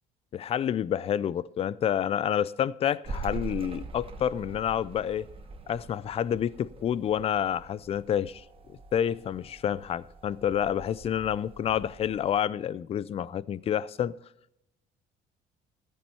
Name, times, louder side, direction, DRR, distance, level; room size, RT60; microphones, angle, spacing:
voice 1, 0.3-5.3 5.7-8.4 8.9-14.2, left 9 dB, 35° left, 0.4 m, -28 dB
sound 1, 3.0-12.4, right 4 dB, 30° right, 1.2 m, -43 dB
14.0 x 8.6 x 4.4 m
cardioid pair, 110°, 17 cm